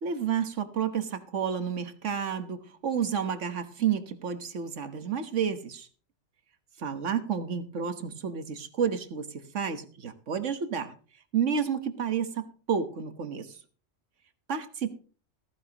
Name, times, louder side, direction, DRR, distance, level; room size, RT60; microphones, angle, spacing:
voice 1, 0.0-5.9 6.8-10.9 11.3-13.6 14.5-15.0, right 7 dB, 85° right, 9 dB, 1.6 m, -30 dB
15.0 x 14.5 x 3.0 m, 0.38 s
omnidirectional pair, 1.2 m